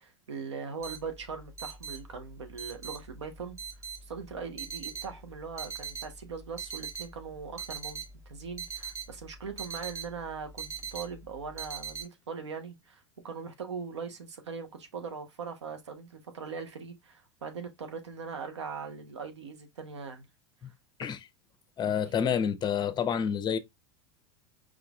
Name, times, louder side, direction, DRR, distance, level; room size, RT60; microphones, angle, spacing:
voice 1, 0.0-3.6 4.1-20.2, right 5 dB, 90° right, 1.0 m, -40 dB
sound 1, 0.8-12.0, right 6 dB, 20° right, 1.3 m, -40 dB
voice 2, 21.8-23.6, left 7 dB, 30° left, 0.7 m, -28 dB
4.9 x 3.6 x 2.4 m
hypercardioid pair, 90°, 14 cm